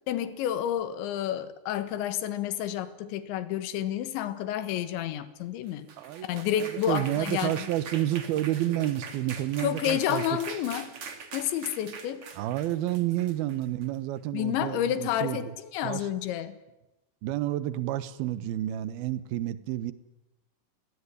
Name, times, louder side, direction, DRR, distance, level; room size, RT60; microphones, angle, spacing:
voice 1, 0.1-5.9 6.2-7.7 9.6-10.9 11.3-12.3 14.3-16.6, left 10 dB, 75° left, 12 dB, 3.8 m, -30 dB
sound 1, 5.7-14.0, right 5 dB, 40° right, 2.5 m, -43 dB
voice 2, 6.0-10.2 12.4-15.5 15.8-16.1 17.2-19.9, right 13 dB, 70° right, 15 dB, 2.6 m, -30 dB
29.0 x 20.0 x 9.9 m, 0.98 s
omnidirectional pair, 5.4 m